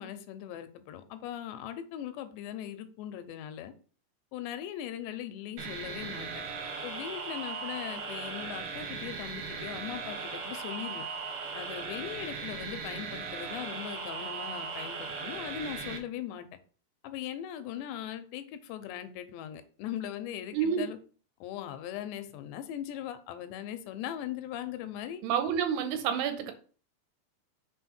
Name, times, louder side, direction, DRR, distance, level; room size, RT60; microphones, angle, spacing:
voice 1, 0.0-3.7 4.3-6.4 6.8-11.0 11.5-16.5 17.0-21.0 21.4-25.2, left 10 dB, 85° left, 2.8 m, -39 dB
sound 1, 5.6-16.0, right 5 dB, 65° right, 2.6 m, -38 dB
voice 2, 20.5-20.9 25.2-26.5, right 8 dB, 80° right, 2.8 m, -29 dB
6.3 x 4.2 x 4.3 m
omnidirectional pair, 5.0 m